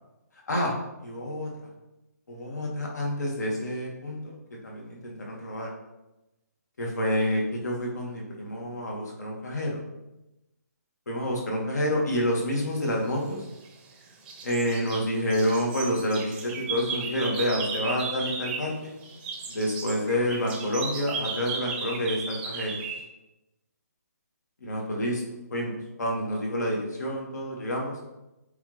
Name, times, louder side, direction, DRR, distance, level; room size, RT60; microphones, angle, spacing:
voice 1, 1.0-1.5 2.3-4.4 4.6-5.7 6.8-9.8 11.1-13.4 14.4-18.9 19.5-22.8 24.6-25.2 25.5-28.0, equal, 75° left, -1 dB, 2.1 m, -28 dB
sound 1, 13.1-13.9 14.3-18.8 19.0-23.0, right 5 dB, 10° right, 0.7 m, -35 dB
8.1 x 3.7 x 3.4 m, 0.98 s
hypercardioid pair, 165°, 9 cm